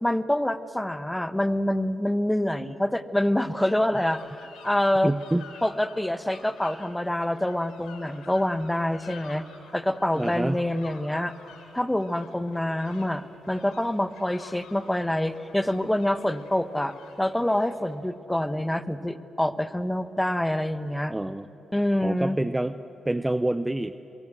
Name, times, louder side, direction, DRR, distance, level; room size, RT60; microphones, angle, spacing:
voice 1, 0.0-5.1 5.6-9.4 9.7-11.3 11.7-21.1 21.7-22.4, left 1 dB, 10° left, 12 dB, 1.2 m, -26 dB
sound 1, 3.9-18.0, left 5 dB, 80° left, 3.0 m, -50 dB
voice 2, 5.0-5.4 10.2-10.6 21.1-21.5 22.0-22.8 23.1-23.9, right 1 dB, 15° right, 12 dB, 0.7 m, -27 dB
27.0 x 22.5 x 7.9 m, 3.0 s
supercardioid pair, 50°, 0 cm